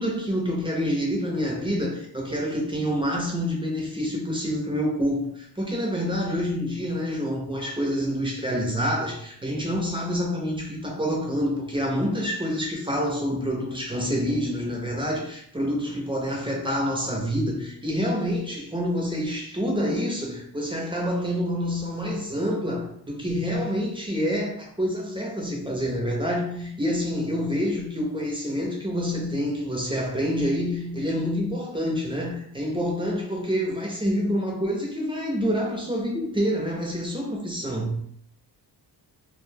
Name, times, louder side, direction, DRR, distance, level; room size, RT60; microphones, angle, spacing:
voice 1, 0.0-38.0, equal, 10° right, -1 dB, 0.4 m, -27 dB
2.5 x 2.1 x 3.2 m, 0.64 s
wide cardioid pair, 150°, 44 cm